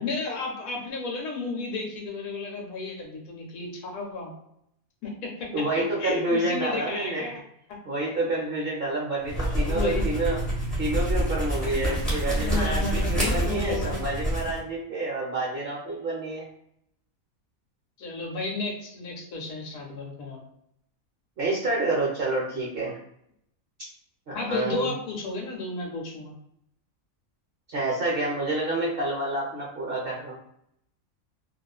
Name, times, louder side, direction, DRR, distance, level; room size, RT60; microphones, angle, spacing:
voice 1, 0.0-4.3 5.0-5.5 5.8-7.4 7.7-7.8 9.4-10.1 12.4-14.0 18.0-20.4 24.3-26.3, left 3 dB, 75° left, 1 dB, 1.1 m, -33 dB
voice 2, 5.5-7.2 7.9-10.4 10.8-16.5 21.4-22.9 24.3-24.9 27.7-30.4, right 2 dB, 60° right, -4 dB, 0.6 m, -28 dB
sound 1, 9.2-14.6, right 1 dB, ahead, 0.8 m, -27 dB
2.5 x 2.4 x 2.2 m, 0.75 s
omnidirectional pair, 1.5 m